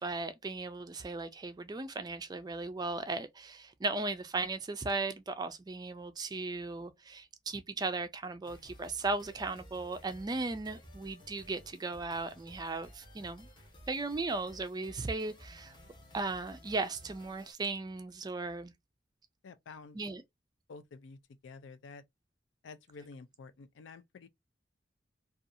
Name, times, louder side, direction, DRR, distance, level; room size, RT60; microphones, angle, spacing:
voice 1, 0.0-13.5 13.9-15.8 16.1-18.7 19.9-20.2, right 3 dB, 20° right, 0.4 m, -37 dB
sound 1, 8.4-17.5, equal, 25° left, 0.8 m, -55 dB
voice 2, 19.4-20.0 20.7-22.0 22.6-24.3, left 4 dB, 80° left, 0.4 m, -50 dB
2.6 x 2.3 x 2.5 m
head